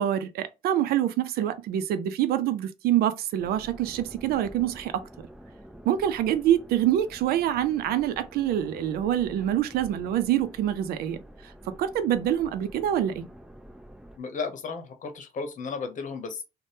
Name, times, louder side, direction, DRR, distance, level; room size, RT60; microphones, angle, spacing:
voice 1, 0.0-5.0 5.8-11.2 11.7-13.3, right 11 dB, 85° right, 0.4 m, -26 dB
sound 1, 3.4-14.2, equal, 5° right, 0.4 m, -48 dB
voice 2, 14.2-16.4, left 5 dB, 55° left, 0.8 m, -34 dB
2.7 x 2.1 x 3.3 m
cardioid pair, 95°, 15 cm